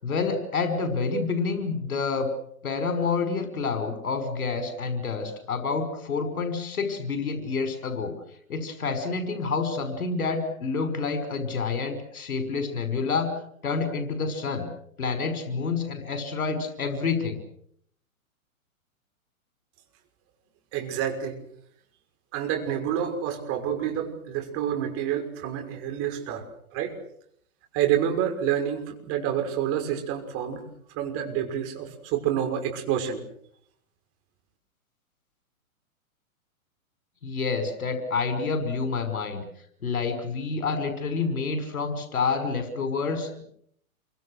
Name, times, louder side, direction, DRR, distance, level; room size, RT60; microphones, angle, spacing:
voice 1, 0.0-2.3 2.6-8.1 8.5-13.3 13.6-14.7 15.0-17.4 37.2-39.4 39.8-43.4, left 4 dB, 75° left, 9 dB, 5.7 m, -28 dB
voice 2, 20.7-21.4 22.3-26.5 26.7-26.9 27.7-30.6 30.9-33.2, right 9 dB, 30° right, 5 dB, 6.0 m, -28 dB
28.5 x 24.5 x 6.5 m, 0.68 s
hypercardioid pair, 130°, 43 cm